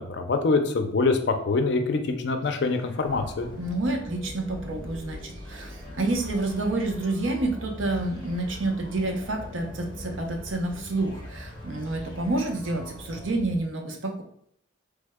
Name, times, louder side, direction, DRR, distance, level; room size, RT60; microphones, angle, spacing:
voice 1, 0.0-3.5, left 3 dB, 60° left, 6 dB, 0.4 m, -25 dB
sound 1, 2.4-13.4, left 1 dB, 25° left, 0.7 m, -44 dB
sound 2, 3.0-13.6, equal, 30° right, 0.7 m, -43 dB
voice 2, 3.6-14.2, right 2 dB, 80° right, 3 dB, 0.6 m, -29 dB
3.2 x 2.1 x 3.4 m, 0.67 s
head